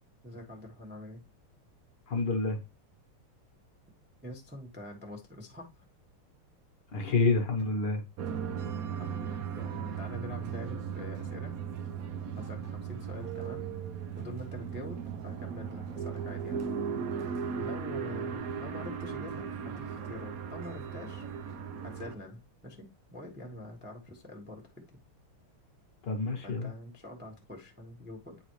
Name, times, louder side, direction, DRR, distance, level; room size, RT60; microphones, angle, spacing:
voice 1, 0.2-1.2 4.2-5.9 7.6-7.7 9.0-11.5 12.4-13.7 14.1-16.7 17.6-21.2 21.8-24.8 26.4-28.4, left 1 dB, 10° right, 0.7 m, -45 dB
voice 2, 2.1-2.6 6.9-8.0 26.0-26.7, left 3 dB, 60° left, 1.5 m, -28 dB
sound 1, 8.2-22.2, right 7 dB, 80° right, 0.7 m, -37 dB
8.9 x 4.0 x 3.0 m
omnidirectional pair, 2.4 m